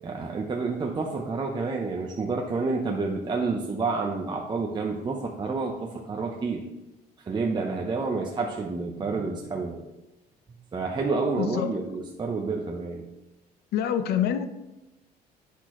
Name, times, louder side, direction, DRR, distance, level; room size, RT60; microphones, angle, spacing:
voice 1, 0.0-6.6 7.2-9.8 10.7-13.0, right 4 dB, 25° right, 1 dB, 0.7 m, -29 dB
voice 2, 11.4-11.7 13.7-14.5, left 9 dB, 70° left, 11 dB, 0.6 m, -26 dB
8.3 x 6.0 x 3.0 m, 1.0 s
cardioid pair, 110°, 17 cm